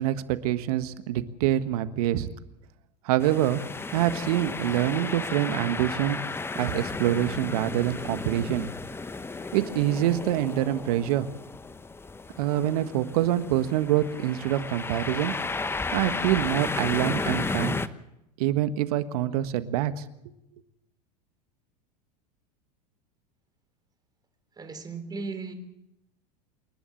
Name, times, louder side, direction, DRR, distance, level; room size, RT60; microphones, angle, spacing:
voice 1, 0.0-2.3 3.0-3.6 3.9-6.2 6.5-8.7 9.5-11.3 12.4-15.3 15.9-17.8 18.4-20.0, right 12 dB, 65° right, 11 dB, 1.5 m, -25 dB
sound 1, 3.2-17.9, left 3 dB, 10° left, 0.9 m, -34 dB
voice 2, 24.6-25.5, right 4 dB, 20° right, 8 dB, 3.8 m, -36 dB
28.5 x 11.5 x 8.5 m, 0.87 s
hypercardioid pair, 95°, 21 cm